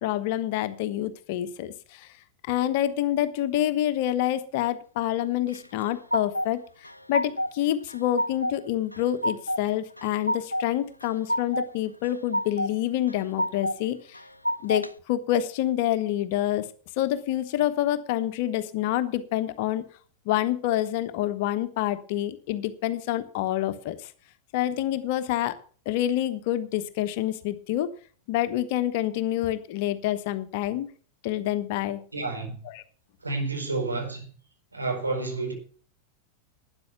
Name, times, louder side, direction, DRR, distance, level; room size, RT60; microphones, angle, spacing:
voice 1, 0.0-2.1 2.5-6.6 7.1-14.2 14.6-16.7 17.0-19.8 20.2-24.1 24.5-25.6 25.8-27.9 28.3-30.9 31.2-32.0 32.7-32.8, left 13 dB, 50° left, 1.1 m, -27 dB
sound 1, 5.5-6.5 6.8-7.6 7.9-8.6 8.9-9.6 10.0-10.7 11.0-11.7 12.0-12.7 13.1-13.8 14.1-14.9, equal, 85° left, 0.6 m, -29 dB
voice 2, 32.1-32.6 33.2-34.2 34.7-35.5, right 3 dB, 80° right, 4.6 m, -30 dB
12.5 x 9.9 x 5.9 m
figure-of-eight pair, 90°, 0 cm